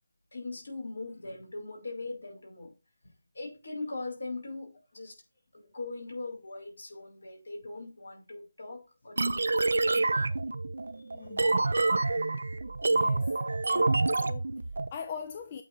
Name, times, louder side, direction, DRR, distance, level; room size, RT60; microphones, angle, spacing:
voice 1, 0.3-2.7 3.0-5.1 5.5-10.2 11.2-11.3, left 3 dB, 75° left, 3.4 m, -41 dB
sound 1, 9.2-14.9, right 3 dB, 70° right, 0.5 m, -27 dB
voice 2, 11.1-11.6 12.9-13.4 13.6-15.6, left 6 dB, 30° left, 0.5 m, -42 dB
8.3 x 2.8 x 4.6 m
figure-of-eight pair, 160°, 0 cm